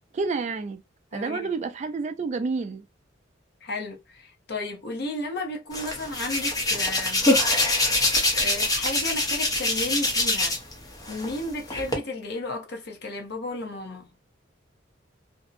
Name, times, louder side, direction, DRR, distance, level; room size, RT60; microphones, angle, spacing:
voice 1, 0.1-0.8 1.1-2.8, right 4 dB, 35° right, 0.3 m, -29 dB
voice 2, 1.1-1.5 3.6-7.2 8.3-10.6 11.1-14.1, left 2 dB, 55° left, 0.7 m, -33 dB
Hands, 5.7-10.7 11.0-11.9, left 2 dB, 20° left, 0.7 m, -24 dB
2.6 x 2.0 x 2.4 m
head